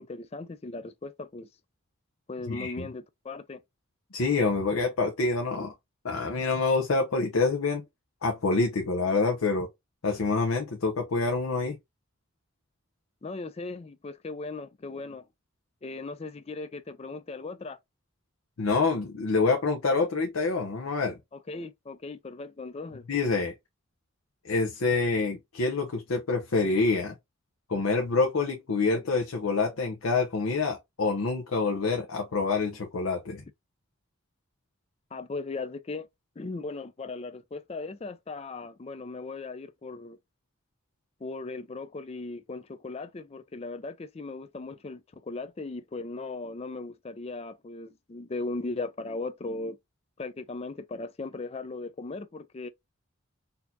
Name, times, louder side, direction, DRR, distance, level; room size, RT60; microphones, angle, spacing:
voice 1, 0.0-1.5 2.3-3.6 13.2-15.3 15.8-17.8 21.3-23.0 35.1-36.1 36.4-40.2 41.2-49.8 50.2-52.7, left 3 dB, 30° left, 0.4 m, -38 dB
voice 2, 2.5-2.9 4.1-5.7 6.0-7.8 8.2-9.7 10.0-11.8 18.6-21.2 23.1-23.5 24.4-27.1 27.7-33.4, left 3 dB, 85° left, 0.7 m, -26 dB
4.1 x 2.8 x 2.7 m
head